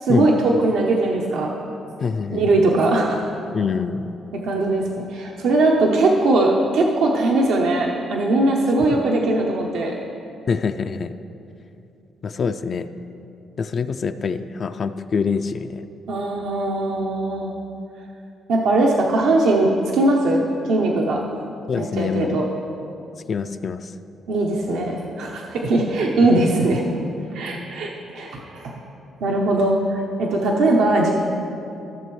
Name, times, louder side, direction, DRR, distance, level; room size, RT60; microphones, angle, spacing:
voice 1, 0.0-1.6 2.3-3.3 4.3-9.9 16.1-17.5 18.5-21.2 21.8-22.5 24.3-26.8 27.3-28.8 29.2-31.1, right 2 dB, 80° right, -1 dB, 0.8 m, -20 dB
voice 2, 2.0-2.5 3.5-4.1 10.5-11.1 12.2-12.9 13.6-15.9 21.7-22.4 23.3-23.9, left 5 dB, 50° left, 9 dB, 0.3 m, -25 dB
15.0 x 6.8 x 3.2 m, 2.8 s
cardioid pair, 90°, 0 cm